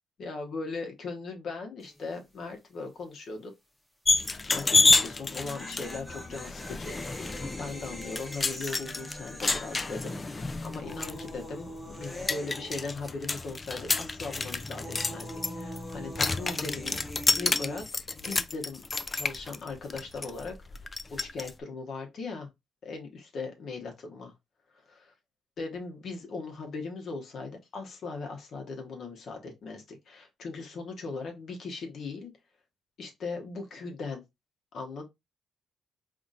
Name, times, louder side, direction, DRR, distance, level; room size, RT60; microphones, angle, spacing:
voice 1, 0.2-3.5 4.5-17.0 17.3-18.8 19.1-22.5 22.8-24.3 25.6-32.3 33.0-34.2 34.7-35.0, left 4 dB, 60° left, 1.0 m, -39 dB
sound 1, 1.8-2.2 2.4-2.5 5.2-13.5 13.8-17.8, equal, 10° left, 0.9 m, -44 dB
sound 2, 4.1-21.5, left 3 dB, 25° left, 0.3 m, -30 dB
4.0 x 2.8 x 2.4 m
cardioid pair, 90°, 0 cm